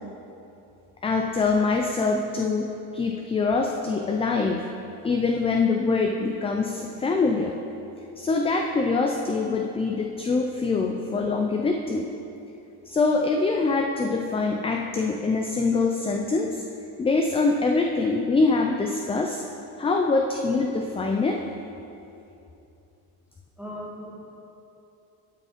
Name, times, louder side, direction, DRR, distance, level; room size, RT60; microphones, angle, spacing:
voice 1, 1.0-4.6 5.0-7.6 8.2-12.1 12.9-16.6 17.0-19.4 19.8-21.4, left 3 dB, 15° left, 2 dB, 0.4 m, -24 dB
voice 2, 23.6-24.4, equal, 5° right, -3 dB, 1.7 m, -39 dB
11.0 x 5.1 x 5.0 m, 2.8 s
supercardioid pair, 105°, 41 cm